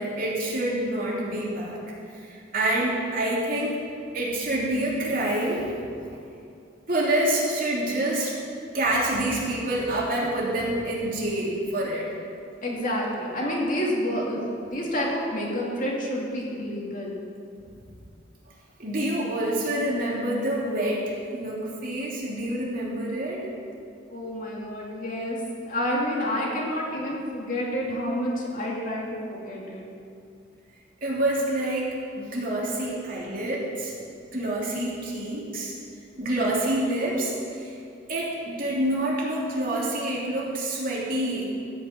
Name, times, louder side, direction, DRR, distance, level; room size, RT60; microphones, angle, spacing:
voice 1, 0.0-1.8 2.1-3.8 4.1-5.7 6.9-8.3 8.7-12.1 17.9-18.0 18.8-23.4 31.0-33.9 34.3-35.7 36.2-37.7 38.1-41.5, right 1 dB, 50° right, -5 dB, 3.1 m, -27 dB
voice 2, 12.6-17.2 24.1-25.4 25.7-29.9, equal, 45° left, -3 dB, 2.6 m, -29 dB
15.5 x 6.0 x 8.6 m, 2.5 s
head